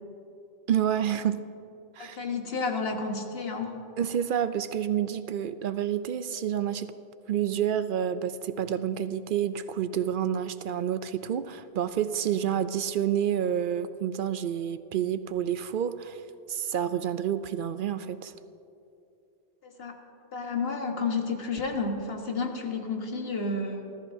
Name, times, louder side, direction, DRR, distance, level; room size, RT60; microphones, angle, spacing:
voice 1, 0.7-1.4 2.0-2.2 4.0-6.9 7.3-16.2 16.5-18.3, right 9 dB, 60° right, 12 dB, 0.6 m, -29 dB
voice 2, 2.0-3.8 19.6-19.9 20.3-24.1, left 4 dB, 75° left, 3 dB, 1.6 m, -31 dB
28.5 x 14.0 x 2.7 m, 2.8 s
omnidirectional pair, 1.0 m